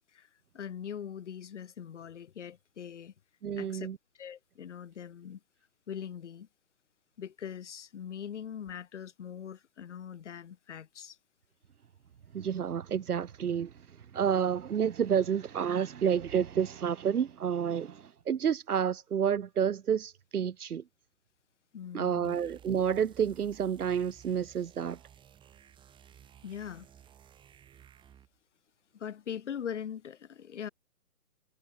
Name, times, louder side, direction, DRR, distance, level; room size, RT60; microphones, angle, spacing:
voice 1, 0.5-3.1 3.6-3.9 4.2-5.4 5.9-6.5 7.2-11.2 21.7-22.4 26.4-26.9 28.9-30.7, left 8 dB, 50° left, 4.3 m, -41 dB
voice 2, 3.4-4.0 12.3-13.7 14.1-20.8 21.9-25.0, right 8 dB, 75° right, 0.9 m, -29 dB
sound 1, 22.2-28.4, right 9 dB, 10° right, 4.5 m, -56 dB
hypercardioid pair, 150°, 46 cm